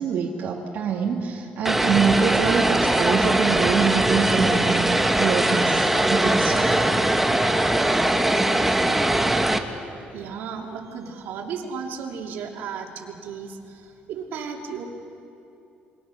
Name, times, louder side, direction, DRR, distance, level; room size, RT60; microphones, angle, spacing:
voice 1, 0.0-6.7, right 6 dB, 60° right, -2 dB, 2.1 m, -25 dB
Vehicle, 1.6-9.6, right 1 dB, 5° right, 1.2 m, -21 dB
voice 2, 10.1-14.8, right 6 dB, 75° right, 1 dB, 2.9 m, -34 dB
27.0 x 24.0 x 6.4 m, 2.8 s
cardioid pair, 150°, 4 cm